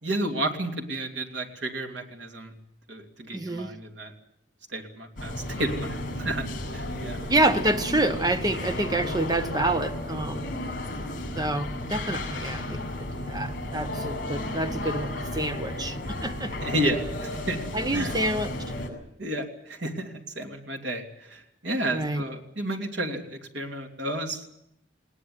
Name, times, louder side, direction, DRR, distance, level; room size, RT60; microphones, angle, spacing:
voice 1, 0.0-2.5 2.9-4.1 4.7-7.2 16.6-17.6 17.9-18.1 19.2-24.5, right 1 dB, 70° right, 3 dB, 3.0 m, -32 dB
voice 2, 3.3-3.7 7.3-10.4 11.4-12.8 13.3-16.5 17.7-18.5 21.9-22.2, right 2 dB, 20° right, 9 dB, 1.1 m, -27 dB
sound 1, 5.2-18.9, left 1 dB, 45° left, 6.7 m, -33 dB
20.0 x 18.5 x 9.6 m, 0.79 s
head